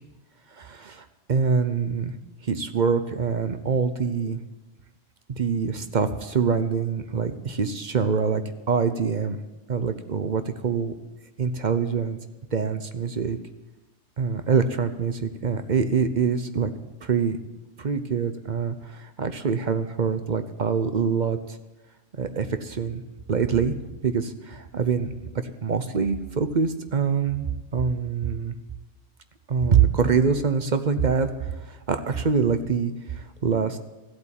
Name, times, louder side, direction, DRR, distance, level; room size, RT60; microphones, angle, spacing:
voice 1, 0.6-2.1 2.4-4.4 5.3-8.4 8.7-9.4 9.7-10.9 11.4-12.2 12.5-13.4 14.2-16.7 17.0-17.4 17.8-21.6 22.1-23.0 23.3-23.7 24.0-25.1 25.6-28.5 29.5-33.8, right 6 dB, 40° right, 10 dB, 0.8 m, -25 dB
14.5 x 8.2 x 7.4 m, 1.1 s
omnidirectional pair, 1.3 m